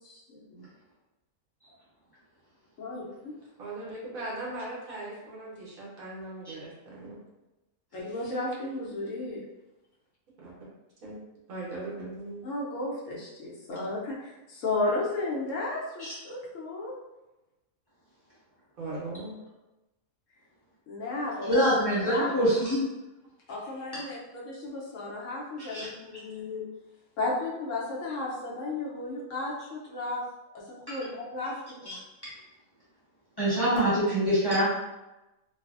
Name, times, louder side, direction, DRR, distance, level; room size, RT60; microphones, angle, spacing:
voice 1, 0.0-0.6 2.8-3.3 7.9-9.4 12.4-16.9 20.9-21.6 22.0-22.3 23.5-26.6 27.2-30.2 30.7-31.9, left 2 dB, 70° left, -5 dB, 1.0 m, -34 dB
voice 2, 3.6-7.2 10.4-10.5 11.0-11.2 11.5-12.4 18.8-19.4, right 2 dB, 80° right, -6 dB, 1.4 m, -39 dB
voice 3, 21.4-22.8 23.9-24.0 25.6-25.9 30.9-31.0 31.9-32.0 33.4-34.6, equal, 20° left, -10 dB, 0.7 m, -25 dB
3.2 x 2.0 x 2.4 m, 1.0 s
omnidirectional pair, 1.4 m